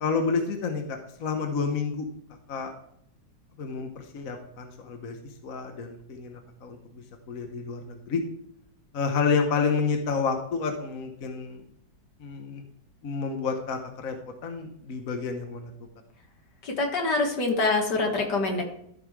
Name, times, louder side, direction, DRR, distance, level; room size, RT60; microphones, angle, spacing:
voice 1, 0.0-2.1 2.5-2.7 3.6-5.2 5.4-8.2 8.9-11.6 12.2-12.6 13.0-15.7, left 5 dB, 55° left, 4 dB, 1.4 m, -29 dB
voice 2, 16.6-18.6, left 3 dB, 70° left, 2 dB, 2.4 m, -25 dB
13.5 x 5.5 x 4.8 m, 0.71 s
omnidirectional pair, 1.9 m